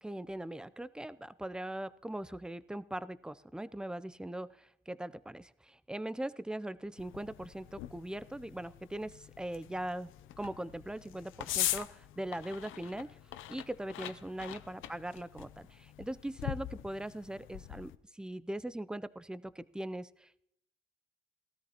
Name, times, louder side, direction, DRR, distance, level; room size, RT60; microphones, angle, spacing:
voice 1, 0.0-13.2 13.5-20.4, right 1 dB, 5° right, 16 dB, 0.5 m, -40 dB
sound 1, 7.0-17.9, left 13 dB, 85° left, 0.6 m, -42 dB
18.5 x 13.5 x 2.9 m, 0.76 s
cardioid pair, 90°, 20 cm